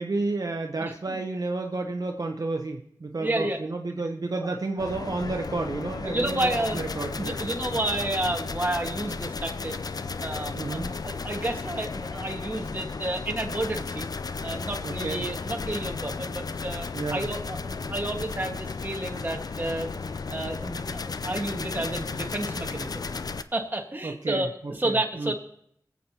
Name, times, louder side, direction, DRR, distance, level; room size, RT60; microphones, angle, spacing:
voice 1, 0.0-7.4 10.5-10.9 14.8-15.2 16.9-17.3 24.0-24.5 24.8-25.3, right 3 dB, 65° right, 3 dB, 0.8 m, -31 dB
voice 2, 0.8-1.2 3.2-3.6 6.0-6.8 7.2-9.8 10.2-14.1 14.4-19.9 20.3-23.1 23.5-25.3, right 1 dB, 30° right, 2 dB, 1.6 m, -31 dB
sound 1, 4.8-23.4, left 4 dB, 70° left, 0.4 m, -34 dB
24.0 x 8.2 x 2.9 m, 0.70 s
wide cardioid pair, 65°, 7 cm